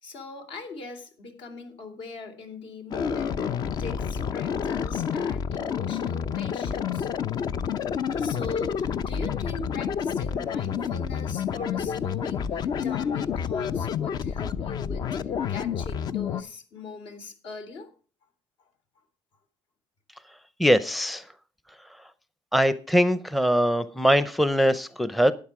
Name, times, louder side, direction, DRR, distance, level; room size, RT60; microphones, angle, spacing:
voice 1, 0.0-7.1 8.1-15.2 15.5-17.9, left 4 dB, 70° left, 6 dB, 3.4 m, -40 dB
sound 1, 2.9-16.4, left 7 dB, 45° left, 0.7 m, -29 dB
voice 2, 20.6-21.2 22.5-25.3, equal, ahead, 14 dB, 0.6 m, -22 dB
12.0 x 9.4 x 4.8 m, 0.38 s
cardioid pair, 120°, 9 cm